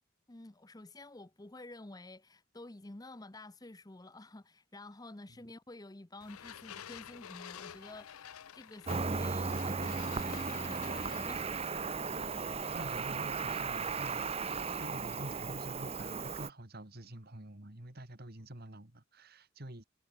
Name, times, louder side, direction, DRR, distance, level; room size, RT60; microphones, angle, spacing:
voice 1, 0.3-11.6, left 2 dB, 15° left, 0.7 m, -50 dB
sound 1, 6.2-11.7, left 9 dB, 80° left, 0.6 m, -49 dB
Cricket, 8.9-16.5, right 4 dB, 25° right, 0.7 m, -36 dB
voice 2, 12.7-14.5 14.8-19.8, right 1 dB, 45° right, 2.3 m, -47 dB
head